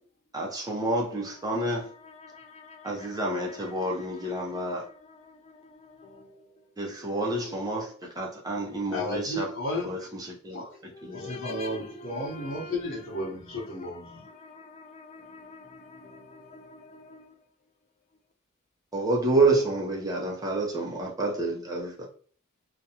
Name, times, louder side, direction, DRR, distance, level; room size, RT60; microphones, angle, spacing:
voice 1, 0.3-1.9 2.8-4.8 6.8-7.9 8.2-9.4 9.9-10.0 10.5-10.6 18.9-21.9, right 2 dB, 20° right, 0.5 m, -28 dB
voice 2, 8.9-9.9 10.5-10.7 11.1-14.3, left 1 dB, 65° left, 1.0 m, -33 dB
voice 3, 10.9-11.8 12.2-12.7 14.4-14.6 15.0-15.7 16.0-16.2 16.5-17.2, left 4 dB, 30° left, 0.3 m, -44 dB
2.4 x 2.1 x 2.8 m
head